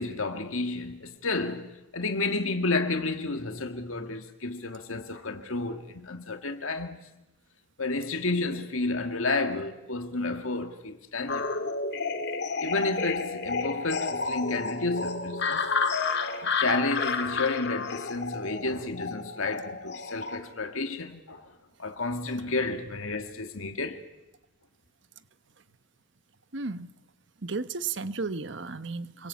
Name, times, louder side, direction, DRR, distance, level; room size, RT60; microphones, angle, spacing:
voice 1, 0.0-7.0 7.8-11.5 12.6-15.7 16.4-21.5 21.8-24.0, left 3 dB, 85° left, 2.1 m, -31 dB
sound 1, 11.3-20.4, left 4 dB, 55° left, 2.1 m, -31 dB
voice 2, 26.5-26.9 27.4-29.3, right 4 dB, 65° right, 1.1 m, -34 dB
29.0 x 23.0 x 8.5 m
head